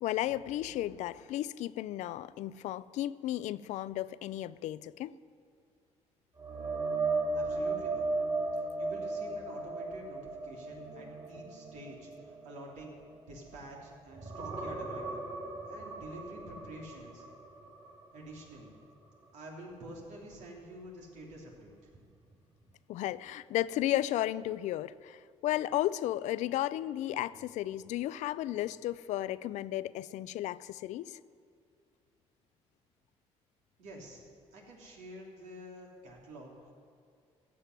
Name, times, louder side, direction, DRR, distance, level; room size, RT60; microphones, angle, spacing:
voice 1, 0.0-5.1 22.9-31.2, left 14 dB, 80° left, 17 dB, 0.4 m, -34 dB
sound 1, 6.4-13.8 14.1-18.0 18.4-18.6 21.9-22.0, right 3 dB, 40° right, 4.9 m, -36 dB
voice 2, 7.3-8.1 8.5-13.0 13.3-15.2 15.7-17.2 18.1-18.7 19.3-21.7 33.8-34.2 34.5-36.7, right 1 dB, 85° right, -1 dB, 3.3 m, -48 dB
15.0 x 7.6 x 9.5 m, 2.3 s
cardioid pair, 100°, 12 cm